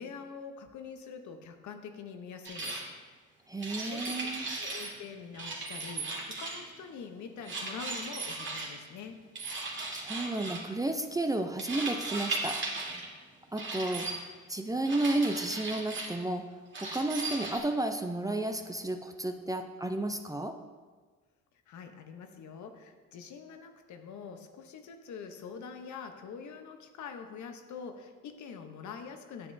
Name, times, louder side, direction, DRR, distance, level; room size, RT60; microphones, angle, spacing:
voice 1, 0.0-2.8 3.7-4.3 4.6-6.1 6.4-9.2 21.7-29.5, left 6 dB, 70° left, 6 dB, 0.9 m, -45 dB
sound 1, 2.4-2.8 3.6-4.9 5.3-6.7 7.4-8.7 9.3-10.7 11.6-13.1 13.6-14.1 14.8-16.1 16.7-17.6, right 3 dB, 40° right, 1.8 m, -37 dB
voice 2, 3.5-4.6 9.9-12.6 13.5-14.1 14.5-16.5 16.8-20.6, right 2 dB, 10° right, 6 dB, 0.5 m, -32 dB
9.5 x 7.7 x 2.6 m, 1.4 s
cardioid pair, 90°, 30 cm